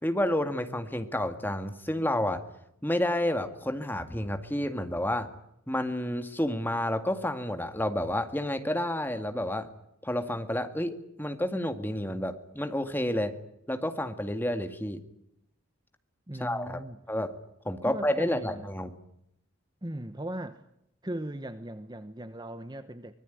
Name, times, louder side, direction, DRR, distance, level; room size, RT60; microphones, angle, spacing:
voice 1, 0.0-2.4 2.8-5.3 5.7-9.7 10.0-13.3 13.7-15.0 16.4-16.8 17.1-17.3 17.7-18.9, left 1 dB, 10° left, 8 dB, 2.0 m, -30 dB
voice 2, 16.3-17.0 17.8-18.7 19.8-20.6 21.0-23.1, right 1 dB, 20° right, 11 dB, 1.0 m, -38 dB
24.5 x 20.5 x 9.4 m, 0.79 s
head